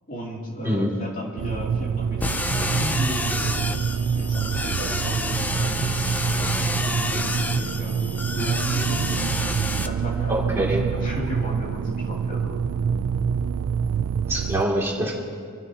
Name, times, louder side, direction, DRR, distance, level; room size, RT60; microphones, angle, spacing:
voice 1, 0.1-3.7 4.1-8.0 8.3-9.3 9.8-12.7, equal, 40° left, -3 dB, 2.7 m, -35 dB
sound 1, 1.4-14.6, right 6 dB, 75° right, 0.3 m, -26 dB
sound 2, 2.2-9.9, left 2 dB, 5° left, 0.4 m, -29 dB
voice 2, 10.3-10.8 14.2-15.2, right 1 dB, 10° right, -5 dB, 2.5 m, -24 dB
27.5 x 13.0 x 2.9 m, 2.1 s
head